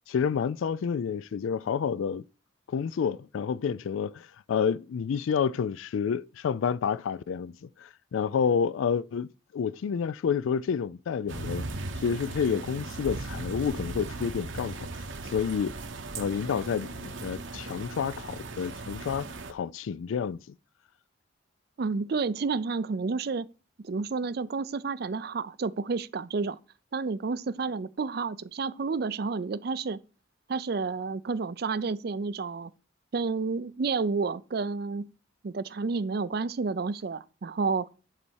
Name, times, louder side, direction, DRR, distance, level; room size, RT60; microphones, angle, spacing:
voice 1, 0.1-2.2 2.7-9.3 9.5-11.7 12.0-15.7 16.1-20.4, left 6 dB, 80° left, 0.3 m, -29 dB
sound 1, 11.3-19.5, right 2 dB, 70° right, 1.1 m, -38 dB
voice 2, 21.8-23.5 23.8-26.6 26.9-30.0 30.5-32.7 33.1-35.1 35.4-37.9, right 4 dB, 50° right, 0.4 m, -30 dB
10.0 x 4.2 x 6.3 m
head